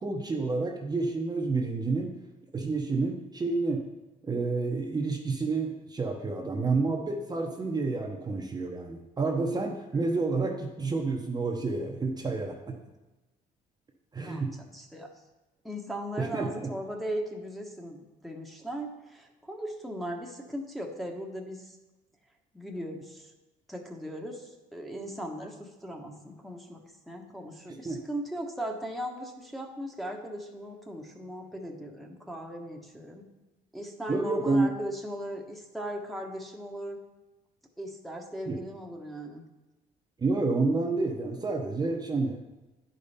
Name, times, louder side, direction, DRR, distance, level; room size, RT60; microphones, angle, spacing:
voice 1, 0.0-2.1 2.5-3.8 4.2-12.7 14.1-14.5 16.2-16.7 27.7-28.0 34.1-34.7 38.5-38.6 40.2-42.4, right 3 dB, 25° right, 1 dB, 0.9 m, -29 dB
voice 2, 14.7-15.1 15.6-21.7 22.5-23.3 23.7-33.3 33.7-37.0 37.8-39.4, equal, ahead, 0 dB, 1.1 m, -38 dB
10.0 x 5.2 x 4.2 m, 1.1 s
cardioid pair, 110°, 17 cm